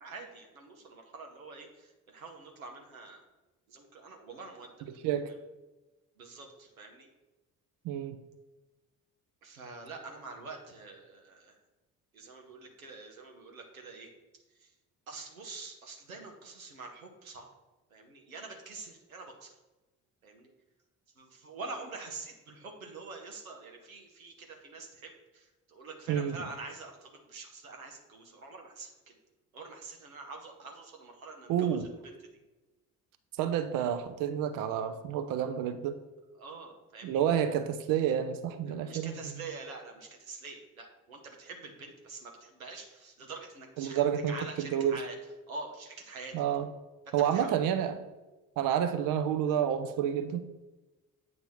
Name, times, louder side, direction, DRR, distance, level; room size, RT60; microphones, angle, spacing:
voice 1, 0.0-3.2 3.7-4.7 5.3-5.4 6.2-7.1 9.4-11.6 12.1-14.1 14.6-14.7 15.1-17.5 17.9-19.5 20.2-20.5 21.2-28.9 29.5-31.8 32.0-32.2 36.4-37.2 38.7-45.2 45.5-46.4 47.3-47.6, right 3 dB, 85° right, 2 dB, 0.8 m, -46 dB
voice 2, 7.8-8.2 26.1-26.4 31.5-31.9 33.4-36.0 37.0-39.3 43.8-45.0 46.3-46.7 47.1-48.0 48.6-50.4, right 9 dB, 55° right, 9 dB, 0.6 m, -29 dB
7.8 x 2.9 x 5.4 m, 1.1 s
figure-of-eight pair, 45°, 40 cm